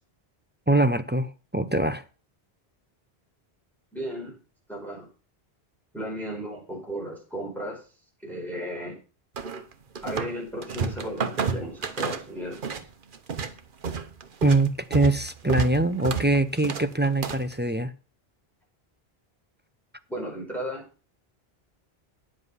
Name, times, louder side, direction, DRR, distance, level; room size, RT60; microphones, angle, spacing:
voice 1, 0.7-2.0 14.4-17.9, right 2 dB, 15° right, 0.4 m, -23 dB
voice 2, 3.9-4.3 4.7-5.1 5.9-7.8 8.2-9.0 10.0-12.8 20.1-20.8, equal, ahead, 4.8 m, -35 dB
sound 1, 9.4-10.4 10.6-12.9 13.1-17.5, right 6 dB, 55° right, 1.0 m, -30 dB
9.8 x 7.5 x 5.6 m
omnidirectional pair, 1.0 m